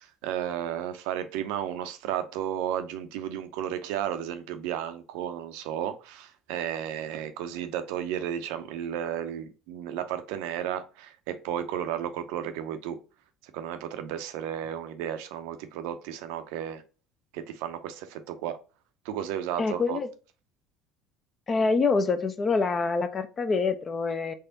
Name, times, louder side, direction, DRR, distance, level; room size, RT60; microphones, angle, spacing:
voice 1, 0.0-13.0 13.5-16.8 17.3-18.6 19.0-20.0, right 10 dB, 70° right, 0.5 m, -33 dB
voice 2, 19.6-20.1 21.5-24.3, left 4 dB, 35° left, 0.6 m, -26 dB
3.4 x 3.3 x 2.7 m
hypercardioid pair, 70°, 0 cm